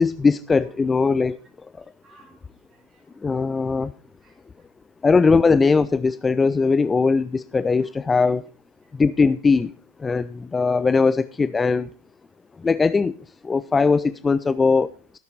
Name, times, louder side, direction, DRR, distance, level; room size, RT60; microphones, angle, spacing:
voice 1, 0.0-1.4 1.8-1.9 3.2-3.9 5.0-8.4 8.9-9.7 10.0-11.9 12.6-13.2 13.4-15.2, left 4 dB, 15° left, 15 dB, 0.4 m, -20 dB
voice 2, 2.0-3.2 3.5-3.6 4.0-4.7 7.8-7.9, right 3 dB, 25° right, 3 dB, 3.7 m, -57 dB
17.5 x 6.7 x 4.2 m, 0.41 s
figure-of-eight pair, 90°, 0 cm